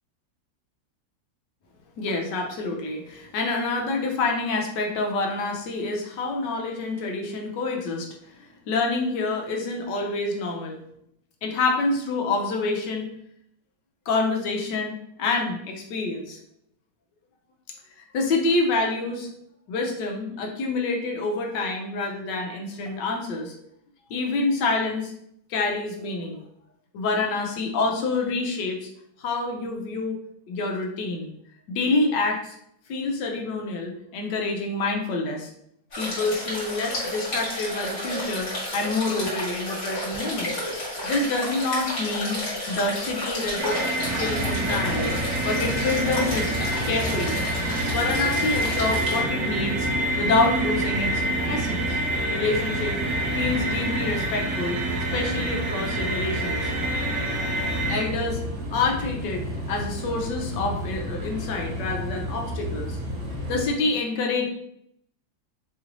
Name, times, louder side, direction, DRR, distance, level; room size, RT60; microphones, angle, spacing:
voice 1, 2.0-8.1 8.4-10.8 11.4-13.1 14.1-16.4 18.0-19.3 19.7-23.5 24.1-25.1 25.5-26.4 26.9-28.9 29.2-30.2 30.5-31.3 31.7-32.5 32.9-35.5 36.0-40.6 41.0-42.4 42.7-43.8 44.1-46.5 46.8-47.4 47.9-49.9 50.2-52.0 52.3-53.0 53.3-54.8 55.1-56.7 57.9-58.4 58.7-63.0 63.5-64.5, left 3 dB, 75° left, 1 dB, 1.4 m, -27 dB
sound 1, 35.9-49.2, left 1 dB, 40° left, 1.6 m, -31 dB
sound 2, 43.6-58.0, right 1 dB, 75° right, 1.5 m, -28 dB
sound 3, 44.0-63.6, equal, 60° right, 1.7 m, -32 dB
4.8 x 3.1 x 2.6 m, 0.73 s
omnidirectional pair, 2.0 m